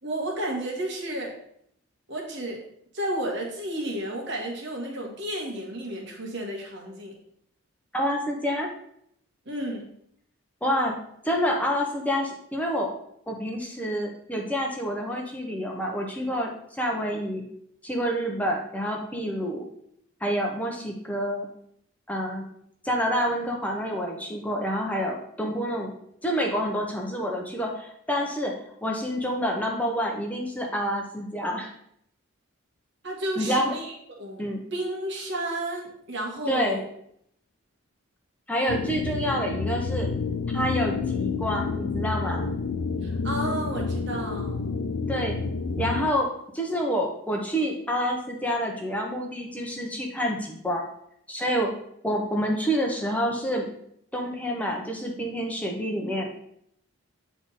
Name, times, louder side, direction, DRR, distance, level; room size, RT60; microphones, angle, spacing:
voice 1, 0.0-1.4 2.1-2.6 2.9-7.2 9.4-9.9 33.0-33.9 34.2-36.9 43.0-44.6, right 1 dB, 55° right, 0 dB, 1.7 m, -32 dB
voice 2, 7.9-8.7 10.6-11.0 11.2-12.9 13.3-17.4 17.8-19.7 20.2-21.5 22.1-22.4 22.8-25.9 26.2-28.5 28.8-31.7 33.4-33.8 34.4-34.6 36.5-36.8 38.5-40.1 40.5-42.5 45.1-45.4 45.8-50.9 51.3-51.7 52.0-53.7 54.1-56.3, equal, 5° left, 0 dB, 0.9 m, -28 dB
sound 1, 38.7-46.1, left 4 dB, 85° left, 0.5 m, -29 dB
9.1 x 3.6 x 4.1 m, 0.70 s
head